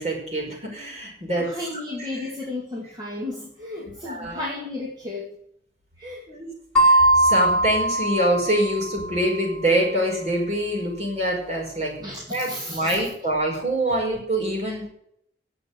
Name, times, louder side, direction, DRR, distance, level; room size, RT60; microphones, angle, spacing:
voice 1, 0.0-1.5 2.0-2.1 4.0-4.4 6.3-6.5 6.8-11.9 12.3-14.9, right 1 dB, 40° right, 0 dB, 5.2 m, -25 dB
voice 2, 1.4-5.3 6.0-6.2 12.0-13.1 13.9-14.0, left 2 dB, 25° right, -2 dB, 2.3 m, -34 dB
sound 1, 6.8-9.3, right 1 dB, 5° left, 3.4 m, -20 dB
11.0 x 8.1 x 8.2 m, 0.72 s
head